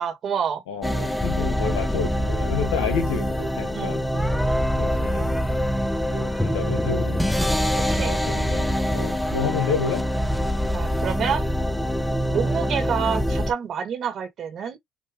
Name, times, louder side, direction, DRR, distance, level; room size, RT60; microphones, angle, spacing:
voice 1, 0.0-0.6 3.7-4.3 7.8-8.2 10.7-11.5 12.3-14.8, right 7 dB, 55° right, 1.8 m, -28 dB
voice 2, 0.7-4.1 4.8-5.3 6.0-7.2 8.0-10.1, left 7 dB, 85° left, 1.0 m, -30 dB
sound 1, 0.8-13.5, equal, 5° left, 0.9 m, -24 dB
5.6 x 2.6 x 3.6 m
supercardioid pair, 75°, 0 cm